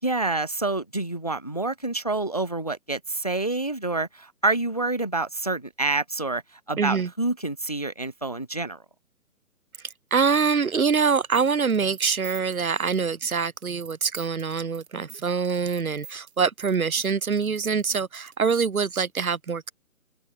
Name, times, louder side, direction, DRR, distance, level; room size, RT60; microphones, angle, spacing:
voice 1, 0.0-6.4 6.7-8.8, right 2 dB, 30° left, 0.4 m, -27 dB
voice 2, 6.8-7.1 10.1-19.7, right 5 dB, 70° right, 1.5 m, -24 dB
sound 1, 11.1-18.6, right 7 dB, 50° right, 3.7 m, -46 dB
open air
figure-of-eight pair, 145°, 43 cm